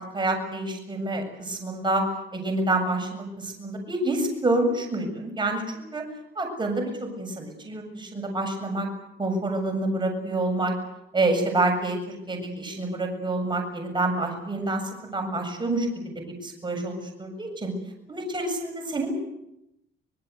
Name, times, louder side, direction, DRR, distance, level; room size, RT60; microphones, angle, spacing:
voice 1, 0.0-2.0 2.3-6.0 6.4-8.9 9.2-10.7 11.1-16.0 16.4-17.7 18.1-19.1, right 2 dB, 25° right, 3 dB, 7.3 m, -27 dB
24.5 x 21.5 x 8.2 m, 0.85 s
cardioid pair, 90°, 20 cm